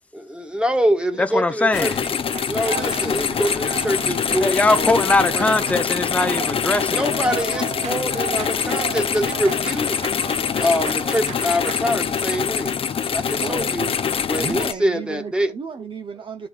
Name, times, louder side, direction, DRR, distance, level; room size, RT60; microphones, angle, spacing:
voice 1, 0.1-2.2 2.5-5.0 5.3-5.5 6.9-10.0 10.6-13.9 14.3-15.5, equal, 10° right, 1.5 m, -25 dB
voice 2, 1.2-2.0 4.4-7.1, left 2 dB, 10° left, 0.6 m, -20 dB
sound 1, 1.7-14.7, left 7 dB, 50° left, 0.6 m, -24 dB
sound 2, 2.3-11.8, right 7 dB, 70° right, 1.1 m, -35 dB
voice 3, 13.4-13.8 14.4-16.5, right 5 dB, 45° right, 0.7 m, -33 dB
12.5 x 5.0 x 2.4 m
cardioid pair, 100°, 12 cm